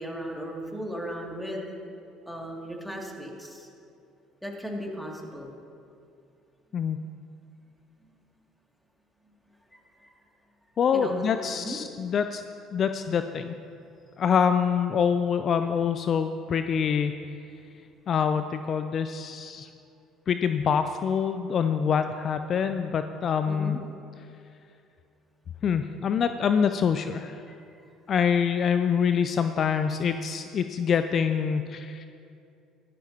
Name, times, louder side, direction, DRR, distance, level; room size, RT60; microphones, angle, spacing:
voice 1, 0.0-1.7 2.3-3.7 4.4-5.5 9.7-10.2 10.9-11.8 23.5-23.8 27.5-27.6, equal, ahead, -1 dB, 2.5 m, -36 dB
voice 2, 10.8-12.4 12.7-13.5 14.2-17.2 18.1-19.7 20.3-23.8 25.6-27.4 28.1-32.1, left 7 dB, 50° left, 9 dB, 0.4 m, -25 dB
16.0 x 13.0 x 2.9 m, 2.5 s
hypercardioid pair, 60°, 0 cm